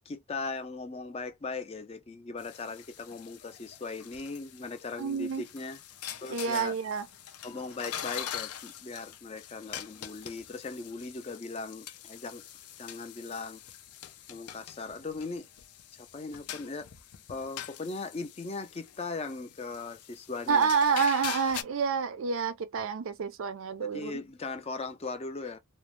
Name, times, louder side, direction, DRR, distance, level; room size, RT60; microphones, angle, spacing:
voice 1, 0.1-5.8 6.2-6.7 7.4-12.4 12.8-13.6 14.3-15.5 15.9-16.9 17.3-20.7 23.8-25.6, left 3 dB, 25° left, 0.4 m, -39 dB
sound 1, 2.4-21.6, left 10 dB, 85° left, 0.5 m, -44 dB
voice 2, 5.0-5.4 6.3-7.1 20.5-24.1, right 5 dB, 60° right, 0.4 m, -28 dB
2.5 x 2.0 x 3.0 m
head